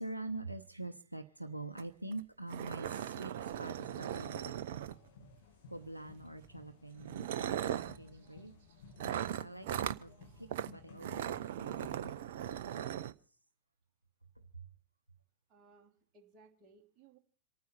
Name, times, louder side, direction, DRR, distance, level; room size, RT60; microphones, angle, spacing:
voice 1, 0.0-3.3 3.6-4.5 5.7-8.5 9.4-13.0 14.5-14.6, right 2 dB, 85° right, 8 dB, 0.8 m, -45 dB
sound 1, 1.8-1.9 2.1-2.2 2.5-5.3 6.3-6.5 7.0-8.0 9.0-10.0 10.5-10.7 11.0-13.1, right 10 dB, 55° right, 0.6 m, -38 dB
sound 2, 3.7-12.1, left 4 dB, 55° left, 2.4 m, -57 dB
voice 2, 15.5-17.2, right 4 dB, 35° right, 2 dB, 2.7 m, -62 dB
27.5 x 9.5 x 4.2 m, 0.42 s
figure-of-eight pair, 90°, 0 cm